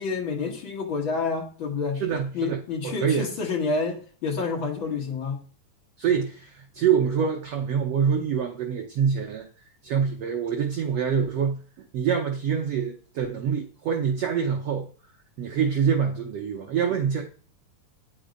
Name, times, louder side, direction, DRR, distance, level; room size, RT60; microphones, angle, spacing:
voice 1, 0.0-2.0 2.3-5.4, left 4 dB, 55° left, 1.4 m, -28 dB
voice 2, 2.0-2.6 2.8-3.3 6.0-9.5 9.8-11.6 11.9-14.9 15.4-17.2, right 7 dB, 85° right, 1.3 m, -25 dB
8.9 x 5.4 x 5.1 m
omnidirectional pair, 4.0 m